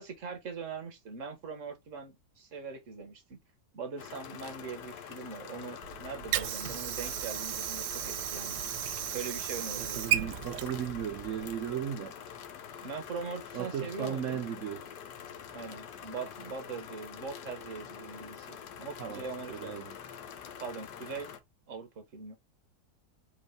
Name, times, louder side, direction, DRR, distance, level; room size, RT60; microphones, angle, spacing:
voice 1, 0.0-3.4 3.7-8.7 9.1-10.4 12.8-14.4 15.5-19.8 20.6-21.3 21.7-22.4, right 5 dB, 50° right, 1.5 m, -41 dB
sound 1, 4.0-21.4, left 8 dB, 85° left, 1.4 m, -46 dB
Water / Sink (filling or washing), 5.8-11.8, right 12 dB, 90° right, 1.2 m, -35 dB
voice 2, 9.8-12.2 13.5-14.9 19.0-19.9, right 9 dB, 65° right, 0.8 m, -36 dB
4.6 x 3.1 x 3.3 m
omnidirectional pair, 1.8 m